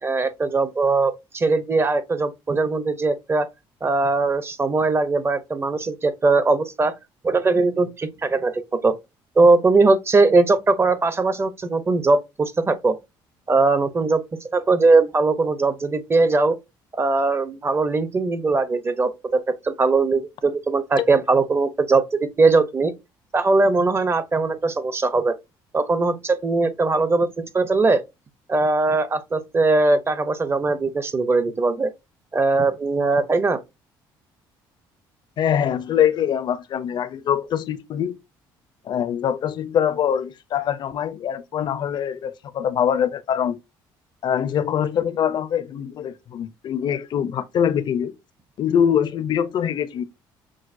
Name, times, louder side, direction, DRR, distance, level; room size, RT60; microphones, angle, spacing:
voice 1, 0.0-3.5 3.8-6.9 7.2-8.9 9.4-13.0 13.5-14.2 14.5-16.5 16.9-22.9 23.3-25.3 25.7-27.3 27.5-28.0 28.5-31.9 32.3-33.6, right 3 dB, 25° right, 0.7 m, -20 dB
voice 2, 35.4-38.2 38.8-43.6 44.2-48.1 48.6-50.0, left 9 dB, 55° left, 0.5 m, -23 dB
6.2 x 2.2 x 2.6 m
cardioid pair, 90°, 9 cm